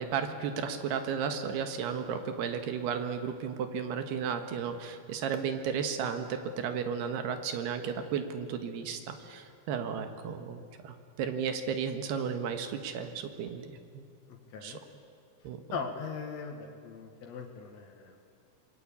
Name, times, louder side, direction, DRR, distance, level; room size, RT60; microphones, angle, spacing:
voice 1, 0.0-14.1 14.6-14.7 15.5-15.8, right 7 dB, 80° right, 7 dB, 3.6 m, -34 dB
voice 2, 14.3-14.8 15.7-18.2, left 5 dB, 55° left, 1 dB, 2.4 m, -40 dB
26.5 x 20.5 x 8.7 m, 2.5 s
omnidirectional pair, 4.6 m